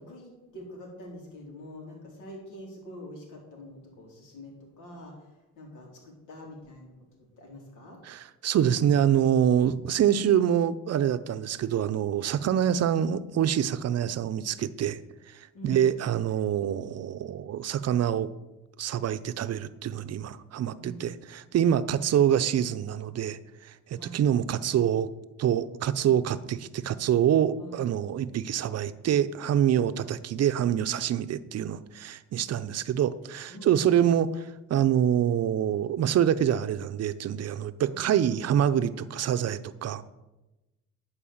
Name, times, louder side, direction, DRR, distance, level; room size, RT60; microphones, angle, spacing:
voice 1, 0.0-6.9 7.2-8.0 15.5-15.8 20.8-21.0 21.8-22.0 24.0-24.2 27.6-27.7 33.5-33.7 37.9-38.0, equal, 85° left, -1 dB, 3.3 m, -45 dB
voice 2, 8.0-15.0 15.3-18.3 18.8-25.1 25.4-40.0, right 9 dB, 55° right, 13 dB, 0.6 m, -26 dB
11.5 x 4.8 x 7.2 m, 1.0 s
cardioid pair, 90°, 30 cm